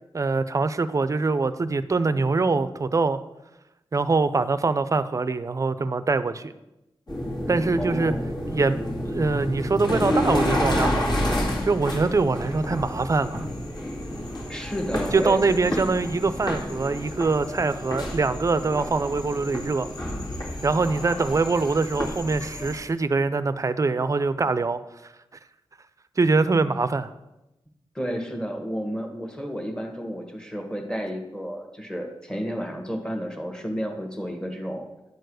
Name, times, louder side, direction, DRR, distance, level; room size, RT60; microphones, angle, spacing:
voice 1, 0.1-3.2 3.9-6.5 7.5-8.1 8.5-8.8 9.1-11.0 11.6-13.5 15.1-19.9 20.6-24.8 26.2-27.1, right 3 dB, 35° right, 13 dB, 0.5 m, -23 dB
sound 1, 7.1-22.7, left 1 dB, 50° left, 2.2 m, -29 dB
voice 2, 7.8-8.2 14.5-15.9 27.9-34.9, equal, 10° left, 3 dB, 1.5 m, -31 dB
10.5 x 4.6 x 6.3 m, 0.93 s
wide cardioid pair, 105°, 9 cm